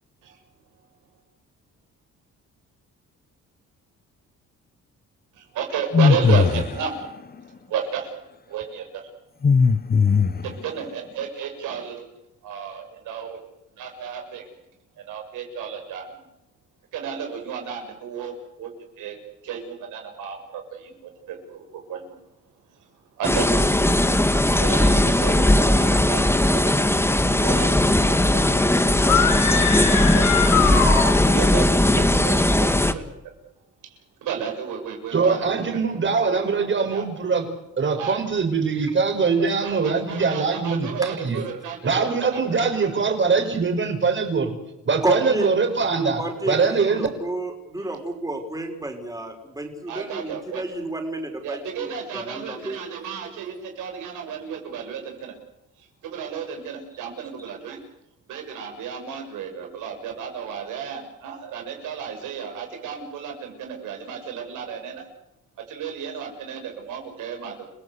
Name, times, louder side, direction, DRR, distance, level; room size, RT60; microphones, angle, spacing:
voice 1, 5.3-7.2 7.5-8.1 8.5-9.1 10.4-12.1 12.4-13.5 13.8-14.4 15.0-16.3 16.9-18.7 19.0-19.2 19.4-22.2 22.7-22.9 23.2-23.7 24.6-26.9 27.4-28.9 29.5-30.8 31.2-33.0 33.8-35.5 36.6-36.7 36.9-37.1 38.0-38.2 39.3-41.9 42.2-42.6 45.2-45.5 47.8-47.9 49.9-50.6 51.4-55.4 55.8-57.8 58.3-65.1 65.7-67.7, right 7 dB, 85° right, 3 dB, 6.8 m, -33 dB
sound 1, 5.9-6.8 9.4-10.6, left 5 dB, 30° left, 1.1 m, -18 dB
sound 2, 23.2-32.9, left 1 dB, 10° left, 2.0 m, -18 dB
sound 3, 29.0-31.6, left 8 dB, 75° left, 5.3 m, -23 dB
voice 2, 35.1-37.5 37.8-41.4 41.8-44.5 44.8-47.1, right 4 dB, 40° right, 5 dB, 6.1 m, -22 dB
voice 3, 45.0-45.5 46.2-52.8, right 2 dB, 10° right, 4 dB, 5.6 m, -30 dB
30.0 x 17.5 x 8.3 m, 0.86 s
cardioid pair, 90°, 30 cm